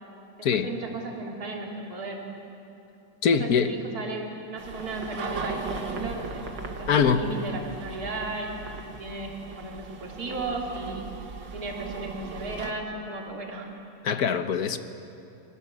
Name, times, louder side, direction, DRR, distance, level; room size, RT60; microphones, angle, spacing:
voice 1, 0.4-2.2 3.3-11.1 11.5-13.7, right 2 dB, 55° right, 0 dB, 3.5 m, -35 dB
voice 2, 3.2-3.7 6.9-7.2 14.0-14.8, left 6 dB, 60° left, 9 dB, 1.5 m, -23 dB
sound 1, 4.6-12.7, right 4 dB, 80° right, 2.4 m, -37 dB
27.5 x 23.0 x 7.6 m, 2.7 s
omnidirectional pair, 1.9 m